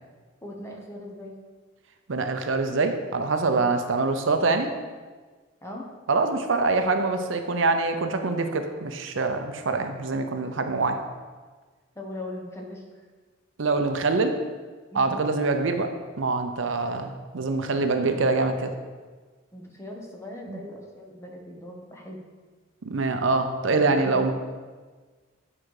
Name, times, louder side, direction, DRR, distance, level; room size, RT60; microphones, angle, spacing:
voice 1, 0.4-1.4 5.6-5.9 11.9-12.8 14.9-15.2 17.6-18.2 19.5-22.2 23.6-24.3, left 1 dB, 15° left, -1 dB, 1.0 m, -40 dB
voice 2, 2.1-4.7 6.1-11.0 13.6-14.3 14.9-15.9 16.2-18.7 20.5-20.6 22.8-24.3, right 3 dB, 75° right, 7 dB, 0.7 m, -24 dB
8.8 x 4.9 x 4.8 m, 1.4 s
head